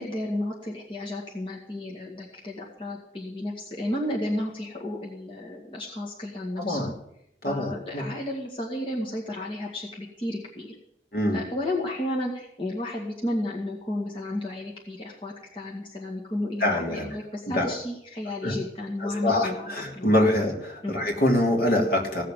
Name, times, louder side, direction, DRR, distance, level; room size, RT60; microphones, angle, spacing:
voice 1, 0.0-6.9 7.4-10.8 11.3-20.2 20.8-21.0, left 1 dB, 30° left, -3 dB, 2.1 m, -32 dB
voice 2, 6.6-6.9 7.4-8.0 11.1-11.4 16.6-17.1 17.5-17.7 18.4-18.5 19.0-22.2, left 1 dB, 55° left, 1 dB, 3.2 m, -24 dB
17.0 x 7.0 x 9.2 m, 0.78 s
head